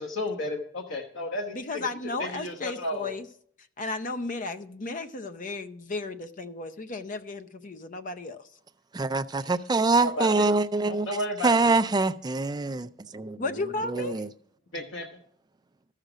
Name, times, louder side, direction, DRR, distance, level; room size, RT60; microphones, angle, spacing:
voice 1, 0.0-1.8 2.2-3.2 9.9-10.3 10.9-11.7 14.7-15.1, left 1 dB, 85° left, 1.0 m, -33 dB
voice 2, 1.5-3.3 3.8-8.4 13.4-14.1, left 3 dB, 45° left, 0.7 m, -34 dB
voice 3, 8.9-11.1 11.4-13.4 13.8-14.3, right 3 dB, 20° right, 0.4 m, -25 dB
13.0 x 6.6 x 5.0 m
head